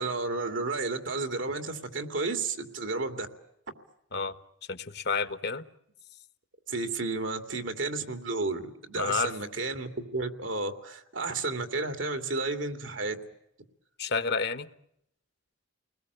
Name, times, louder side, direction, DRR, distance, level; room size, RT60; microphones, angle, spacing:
voice 1, 0.0-3.3 6.7-13.2, right 3 dB, 75° right, 7 dB, 2.7 m, -32 dB
voice 2, 4.7-5.6 8.9-9.3 14.0-14.7, left 5 dB, 55° left, 12 dB, 1.3 m, -30 dB
30.0 x 20.5 x 8.2 m, 0.79 s
head